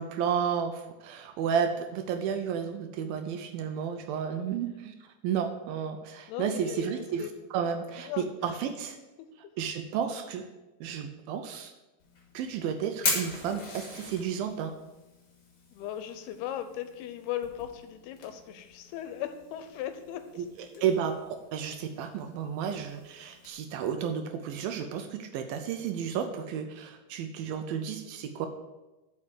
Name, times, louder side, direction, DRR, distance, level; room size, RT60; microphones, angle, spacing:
voice 1, 0.0-4.9 5.2-7.2 7.5-9.0 9.6-10.5 10.8-11.7 12.3-14.7 20.8-28.5, right 7 dB, 80° right, 7 dB, 2.3 m, -32 dB
voice 2, 6.3-7.3 8.0-8.5 15.7-20.8, left 10 dB, 90° left, 9 dB, 2.7 m, -38 dB
Fire, 12.0-23.5, left 3 dB, 50° left, 1.7 m, -40 dB
7.3 x 5.5 x 6.4 m, 1.0 s
omnidirectional pair, 4.5 m